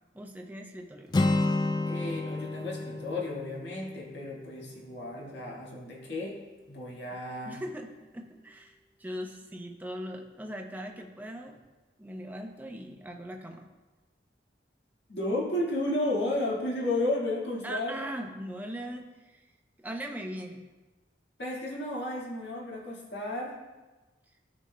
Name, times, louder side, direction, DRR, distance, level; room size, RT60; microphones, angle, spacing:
voice 1, 0.1-1.1 7.5-11.6 12.0-13.7 17.6-19.4 19.8-20.6, equal, 10° right, 2 dB, 0.6 m, -40 dB
Acoustic guitar, 1.1-5.0, left 2 dB, 25° left, 0.3 m, -30 dB
voice 2, 1.8-6.4 6.7-7.6 15.1-18.0 21.4-23.5, left 1 dB, 75° left, -4 dB, 1.8 m, -33 dB
13.5 x 5.2 x 2.2 m, 1.2 s
head